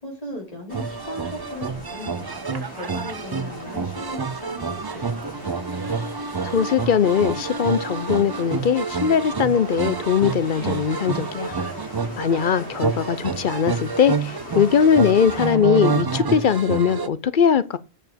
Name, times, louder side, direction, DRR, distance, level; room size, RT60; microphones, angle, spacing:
voice 1, 0.0-5.6, left 1 dB, 35° left, 3.8 m, -37 dB
sound 1, 0.7-15.6, left 2 dB, 70° left, 3.9 m, -40 dB
sound 2, 0.7-17.1, right 5 dB, 35° right, 0.4 m, -28 dB
voice 2, 6.4-11.5 12.2-17.8, left 7 dB, 55° left, 0.7 m, -20 dB
6.9 x 6.2 x 6.8 m
omnidirectional pair, 1.1 m